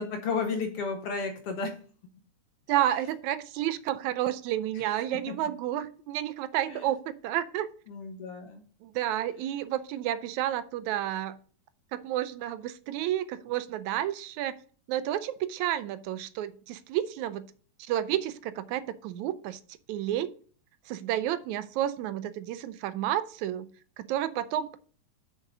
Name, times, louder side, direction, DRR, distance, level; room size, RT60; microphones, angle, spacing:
voice 1, 0.0-1.7 4.7-4.8 5.3-5.4 6.7-6.9 7.9-8.6, left 4 dB, 65° left, 5 dB, 1.6 m, -33 dB
voice 2, 2.7-7.7 8.8-11.4 11.9-14.6 14.9-17.5 17.8-19.6 19.9-20.3 20.9-23.7 24.0-24.8, right 12 dB, 80° right, 13 dB, 1.9 m, -31 dB
6.5 x 6.4 x 4.8 m, 0.43 s
omnidirectional pair, 3.4 m